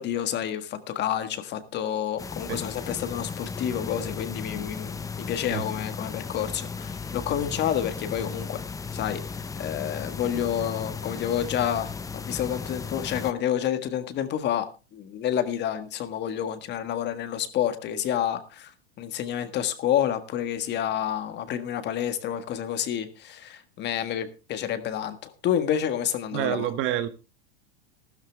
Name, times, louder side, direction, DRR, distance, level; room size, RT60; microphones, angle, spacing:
voice 1, 0.0-8.6 8.9-9.2 9.6-14.7 14.9-18.7 19.0-26.7, left 10 dB, 35° left, 1.6 m, -29 dB
sound 1, 2.2-13.3, left 5 dB, 10° left, 0.7 m, -35 dB
voice 2, 26.3-27.1, right 12 dB, 40° right, 1.3 m, -27 dB
14.0 x 12.5 x 3.5 m
supercardioid pair, 125°, 31 cm